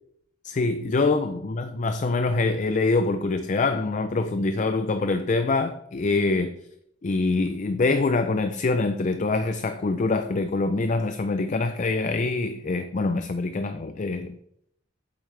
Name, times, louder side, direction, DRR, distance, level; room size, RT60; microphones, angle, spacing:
voice 1, 0.4-6.5 7.0-14.4, left 3 dB, 40° left, 0.4 m, -25 dB
8.3 x 7.6 x 3.3 m
head